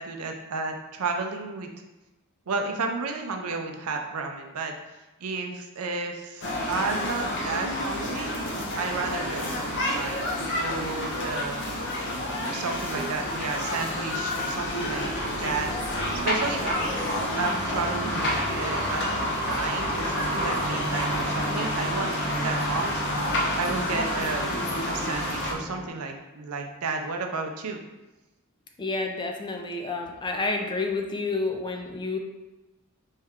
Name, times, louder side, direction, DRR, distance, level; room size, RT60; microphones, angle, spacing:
voice 1, 0.0-1.7 2.5-4.7 5.2-8.3 8.8-10.2 10.5-11.6 12.5-15.1 15.4-15.7 16.2-23.0 23.6-24.5 24.9-27.8, right 4 dB, 70° right, 3 dB, 0.6 m, -32 dB
sound 1, 6.4-25.5, left 1 dB, 55° left, 0.8 m, -29 dB
sound 2, 14.5-21.2, right 2 dB, 5° right, 1.0 m, -42 dB
sound 3, 14.9-25.9, right 1 dB, 25° right, 0.6 m, -37 dB
voice 2, 16.5-16.8 23.7-23.9 28.8-32.2, left 3 dB, 20° left, 3 dB, 0.4 m, -30 dB
4.5 x 3.2 x 3.6 m, 1.1 s
head